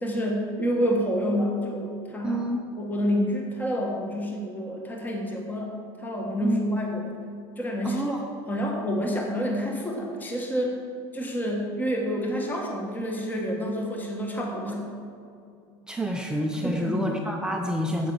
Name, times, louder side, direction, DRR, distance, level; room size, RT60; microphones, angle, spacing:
voice 1, 0.0-2.5 2.8-5.7 6.0-7.2 7.6-8.2 8.5-10.8 11.1-14.9 16.6-17.1, equal, 15° left, 0 dB, 1.4 m, -28 dB
voice 2, 2.2-2.6 6.4-6.6 7.8-8.2 15.9-18.1, equal, 5° right, 1 dB, 0.7 m, -28 dB
8.6 x 8.4 x 6.2 m, 2.5 s
supercardioid pair, 130°, 13 cm